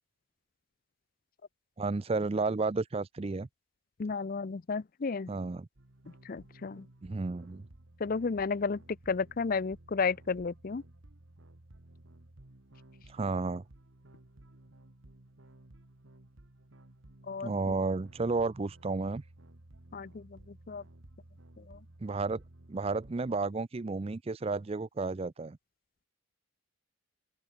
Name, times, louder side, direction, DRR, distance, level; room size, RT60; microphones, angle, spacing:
voice 1, 1.8-3.5 5.3-5.7 7.0-7.6 13.1-13.6 17.4-19.2 22.0-22.4 22.7-25.6, right 3 dB, 25° right, 0.4 m, -32 dB
voice 2, 4.0-5.3 6.3-6.8 8.0-10.8 17.3-17.5 19.9-20.4 20.7-20.8 21.7-21.8, left 4 dB, 40° left, 0.4 m, -32 dB
sound 1, 5.8-23.4, right 1 dB, 60° right, 1.6 m, -56 dB
open air
head